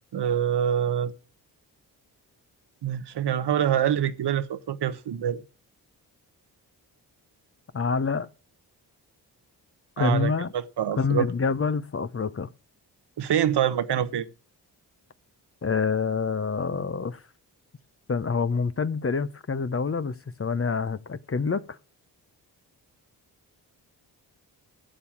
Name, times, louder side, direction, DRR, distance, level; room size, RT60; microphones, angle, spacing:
voice 1, 0.1-1.1 2.8-5.4 10.0-11.3 13.2-14.3, right 9 dB, 65° right, 1.0 m, -25 dB
voice 2, 7.7-8.3 10.0-10.5 11.0-12.5 15.6-17.2 18.1-21.8, left 5 dB, 30° left, 0.8 m, -27 dB
12.5 x 7.0 x 7.3 m
supercardioid pair, 45°, 44 cm